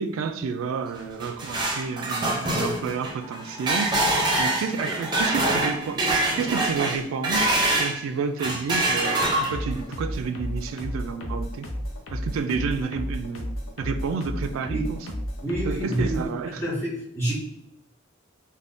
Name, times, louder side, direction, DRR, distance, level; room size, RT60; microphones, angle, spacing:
voice 1, 0.0-7.5 7.8-11.7 12.1-15.0 15.6-16.6, right 5 dB, 85° right, 0.3 m, -30 dB
sound 1, 1.0-8.0 8.4-9.8, right 2 dB, 20° right, 0.5 m, -25 dB
sound 2, 9.5-16.3, equal, 85° left, 0.6 m, -32 dB
voice 2, 15.4-16.3 16.5-17.3, right 1 dB, 10° left, 1.4 m, -28 dB
3.4 x 2.2 x 2.5 m
head